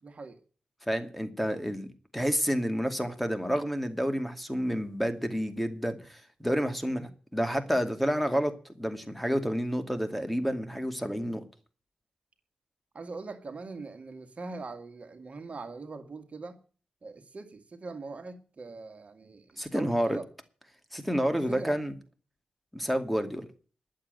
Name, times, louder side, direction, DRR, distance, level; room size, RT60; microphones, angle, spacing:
voice 1, 0.0-0.4 12.9-16.6 17.0-20.3 21.5-21.8, right 3 dB, 55° right, 1.9 m, -42 dB
voice 2, 0.9-1.9 2.1-11.4 19.6-20.2 20.9-21.9 22.7-23.5, equal, ahead, 2.3 m, -29 dB
11.5 x 7.7 x 9.0 m
cardioid pair, 60°, 3 cm